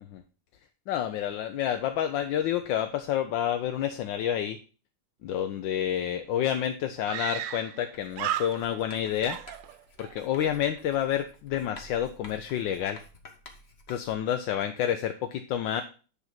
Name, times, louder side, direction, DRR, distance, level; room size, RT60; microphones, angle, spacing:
voice 1, 0.9-4.6 5.2-9.4 10.0-13.0 13.9-15.8, left 10 dB, 85° left, 7 dB, 1.3 m, -29 dB
Screaming, 6.0-6.1 6.3-6.4 7.1-7.9 8.1-8.9 9.2-10.2, right 11 dB, 80° right, 1.3 m, -34 dB
Writing, 7.9-14.3, left 2 dB, 40° left, 1.3 m, -51 dB
9.9 x 4.0 x 5.8 m, 0.37 s
omnidirectional pair, 2.0 m